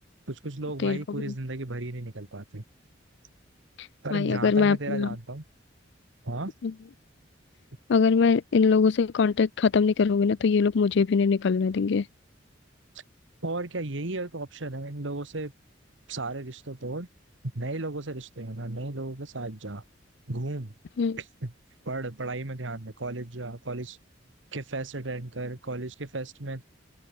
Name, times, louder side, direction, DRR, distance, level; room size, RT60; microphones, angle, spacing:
voice 1, 0.3-2.6 4.0-5.4 6.2-6.5 13.4-15.5 16.1-17.1 17.5-19.8 20.3-20.7 21.2-21.5 21.8-24.0 24.5-26.6, right 2 dB, 75° right, 1.8 m, -34 dB
voice 2, 0.8-1.3 3.8-5.1 6.6-6.7 7.9-12.1 21.0-21.2, left 5 dB, 65° left, 0.4 m, -23 dB
open air
head